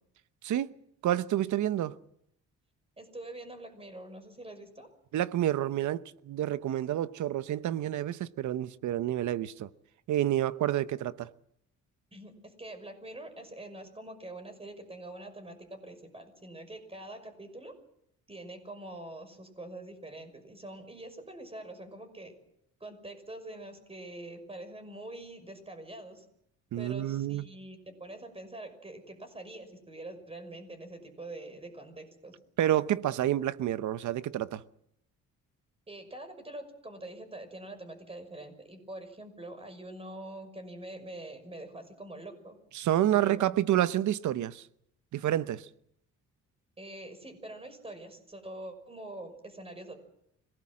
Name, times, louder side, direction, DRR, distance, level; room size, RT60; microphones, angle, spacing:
voice 1, 1.0-2.0 5.1-9.7 10.1-11.3 26.7-27.4 32.6-34.6 42.7-44.6 45.1-45.7, right 12 dB, 75° right, 1.0 m, -29 dB
voice 2, 3.0-4.9 12.1-17.8 18.3-22.3 22.8-26.3 26.8-32.3 35.9-42.6 43.0-43.3 46.8-50.0, right 1 dB, 20° right, 6.0 m, -45 dB
26.0 x 18.5 x 7.6 m
cardioid pair, 90°, 30 cm